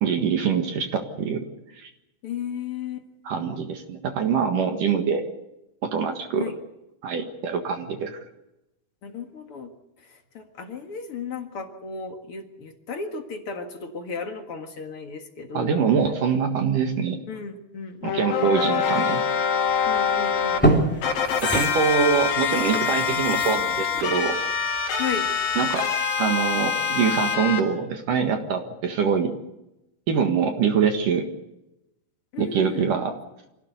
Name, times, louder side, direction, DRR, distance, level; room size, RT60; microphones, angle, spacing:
voice 1, 0.0-1.5 1.8-1.9 3.3-5.2 5.8-6.5 7.0-8.2 15.5-17.2 18.1-19.2 21.4-24.4 25.6-25.9 26.2-29.3 30.1-31.3 32.4-33.1, right 6 dB, 60° right, 5 dB, 3.0 m, -24 dB
voice 2, 2.2-3.1 6.4-6.6 9.0-9.7 10.0-15.8 17.3-18.6 19.9-21.1 25.0-25.3 32.3-32.9, left 5 dB, 50° left, 5 dB, 1.9 m, -35 dB
sound 1, 18.0-20.6 21.0-27.6, left 6 dB, 65° left, 3.6 m, -25 dB
sound 2, 19.8-20.0 20.4-25.1 25.5-25.6, right 1 dB, 5° left, 2.4 m, -27 dB
25.5 x 16.5 x 8.2 m, 0.92 s
omnidirectional pair, 4.6 m